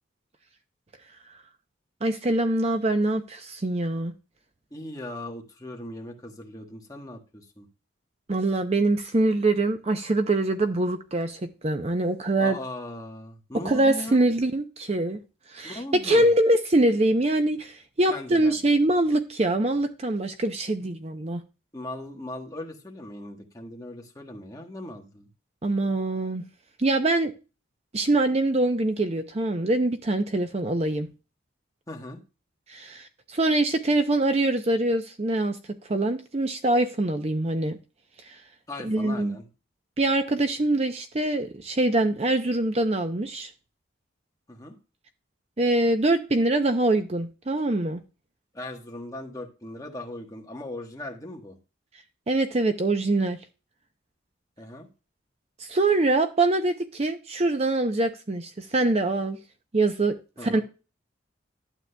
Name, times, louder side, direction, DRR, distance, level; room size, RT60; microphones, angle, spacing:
voice 1, 2.0-4.1 8.3-12.6 13.6-15.2 15.5-21.4 25.6-26.5 26.8-27.3 27.9-31.1 32.7-35.6 35.9-37.8 38.2-38.4 38.8-39.4 40.0-43.5 45.6-48.0 52.3-53.4 55.6-59.4 59.7-60.2 60.4-60.6, right 2 dB, 30° right, 0.6 m, -24 dB
voice 2, 4.7-7.7 12.4-14.3 15.6-16.3 18.1-18.6 21.7-25.3 31.9-32.2 38.7-39.5 44.5-44.8 48.5-51.6 54.6-54.9 60.4-60.6, left 1 dB, 15° left, 1.2 m, -38 dB
11.5 x 8.2 x 2.2 m
head